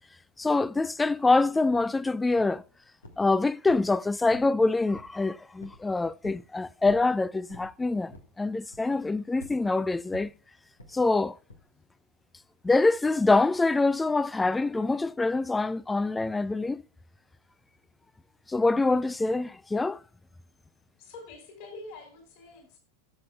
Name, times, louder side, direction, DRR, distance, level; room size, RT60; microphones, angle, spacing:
voice 1, 0.4-2.6 3.2-10.3 10.9-11.4 12.6-16.8 18.5-20.0, left 3 dB, 10° left, 0.3 m, -25 dB
sound 1, 1.7-1.9 2.4-2.7 3.0-3.3 3.7-4.6 4.9-5.2 5.6-5.8 6.2-6.5 6.8-7.1 7.5-7.7 8.1-8.4 8.7-9.0 9.4-9.6 10.1-10.4 10.8-11.0 11.5-11.7, left 1 dB, 75° left, 1.5 m, -48 dB
voice 2, 21.0-22.8, left 3 dB, 45° left, 4.2 m, -46 dB
16.0 x 7.5 x 2.3 m
figure-of-eight pair, 90°, 0 cm